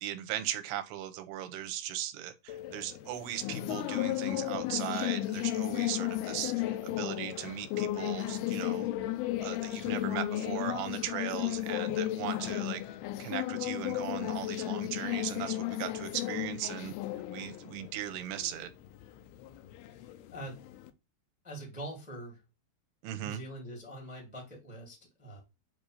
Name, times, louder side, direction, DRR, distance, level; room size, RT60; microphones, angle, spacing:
voice 1, 0.0-8.9 9.4-12.8 13.2-16.9 17.3-18.7 23.0-23.4, right 12 dB, 80° right, 2.7 m, -38 dB
sound 1, 2.5-20.9, left 14 dB, 80° left, 2.3 m, -34 dB
voice 2, 19.8-20.5 21.4-22.4 23.2-25.4, right 1 dB, 5° right, 0.7 m, -44 dB
7.3 x 2.7 x 4.9 m
omnidirectional pair, 4.9 m